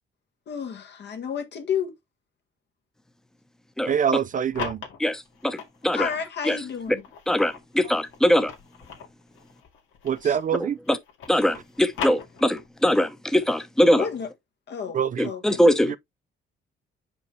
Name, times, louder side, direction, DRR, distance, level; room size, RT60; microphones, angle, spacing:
voice 1, 0.5-1.9 5.9-7.0 10.2-10.4 13.9-14.3 14.7-15.4, left 7 dB, 60° left, 1.5 m, -31 dB
voice 2, 3.9-4.8 10.0-10.8 14.9-15.3, right 8 dB, 40° right, 0.4 m, -24 dB
sound 1, 4.1-6.3 6.8-10.6 10.9-12.8, left 7 dB, 85° left, 2.1 m, -38 dB
voice 3, 5.0-6.1 6.5-6.6 7.3-8.5 10.6-11.0 11.3-14.0 15.2-16.0, equal, 5° left, 0.9 m, -22 dB
5.8 x 5.3 x 3.1 m
cardioid pair, 90°, 20 cm